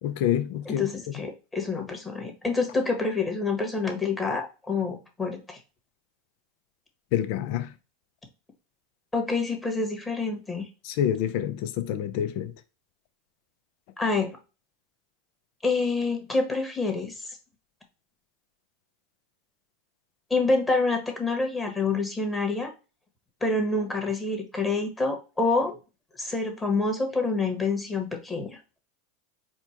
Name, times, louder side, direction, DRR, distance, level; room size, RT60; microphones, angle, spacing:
voice 1, 0.0-0.9 7.1-7.7 10.8-12.5, left 10 dB, 60° left, 0.6 m, -27 dB
voice 2, 0.6-5.6 9.1-10.7 14.0-14.3 15.6-17.3 20.3-22.7 23.4-25.8 26.2-28.6, left 3 dB, 15° left, 1.4 m, -27 dB
4.3 x 2.3 x 4.4 m
hypercardioid pair, 105°, 0 cm